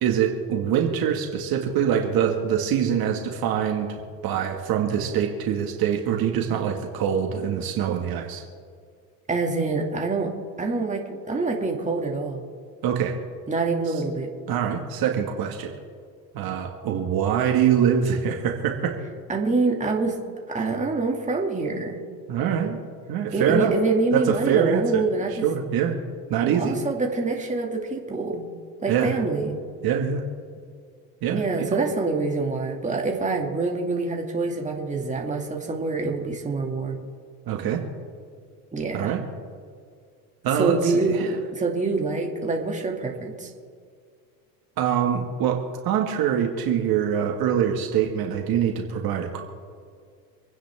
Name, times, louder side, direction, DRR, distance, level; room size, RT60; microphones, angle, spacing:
voice 1, 0.0-4.0 4.2-8.4 12.8-13.2 14.5-15.7 16.3-18.9 22.3-22.8 23.1-23.7 24.1-25.0 25.4-26.0 26.3-26.8 28.9-29.1 29.8-30.2 31.2-31.7 37.5-37.8 38.9-39.2 40.4-41.3 44.8-49.4, right 8 dB, 50° right, 3 dB, 2.0 m, -24 dB
voice 2, 9.3-10.3 10.6-12.4 13.5-14.3 19.3-20.2 20.5-22.0 23.3-25.5 26.4-28.5 28.8-29.6 31.3-37.0 38.7-39.1 40.5-43.5, right 3 dB, 15° right, 0 dB, 2.5 m, -26 dB
27.0 x 9.9 x 3.7 m, 2.1 s
supercardioid pair, 105°, 46 cm